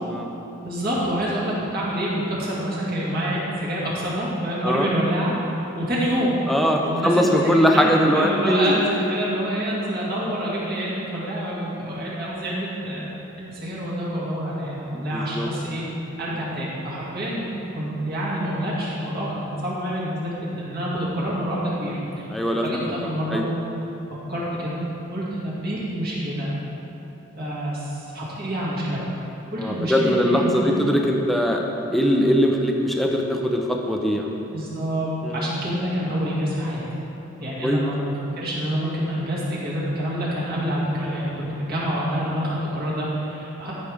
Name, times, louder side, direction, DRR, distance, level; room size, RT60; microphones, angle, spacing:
voice 1, 0.6-6.3 6.8-13.1 13.4-15.8 16.2-23.4 24.3-24.8 25.1-26.5 27.4-29.1 29.5-30.8 34.5-36.8 37.4-43.7, equal, 45° right, -7 dB, 2.2 m, -27 dB
voice 2, 6.5-8.7 14.9-15.5 16.3-16.4 22.3-23.5 29.6-31.6 31.9-34.3 35.2-35.4 37.6-37.8, equal, ahead, 0 dB, 0.6 m, -21 dB
13.5 x 6.6 x 3.6 m, 3.0 s
head